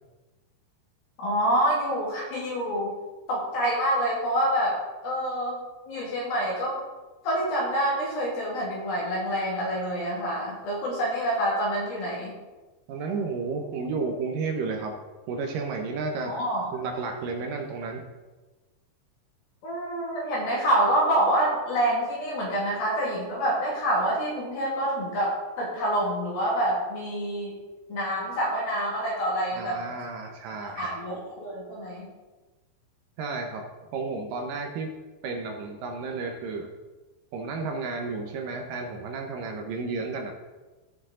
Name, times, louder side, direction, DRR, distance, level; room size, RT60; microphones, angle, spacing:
voice 1, 1.2-3.0 3.3-5.6 5.9-6.8 7.2-12.4 16.3-16.7 19.6-27.6 27.9-29.8 30.8-32.1, right 1 dB, 65° left, -5 dB, 3.9 m, -27 dB
voice 2, 12.9-14.9 15.3-16.3 16.7-18.0 29.5-31.0 33.2-33.6 33.9-34.9 35.2-36.7 37.3-40.3, right 4 dB, 70° right, 3 dB, 2.3 m, -32 dB
15.5 x 7.0 x 3.8 m, 1.2 s
omnidirectional pair, 4.8 m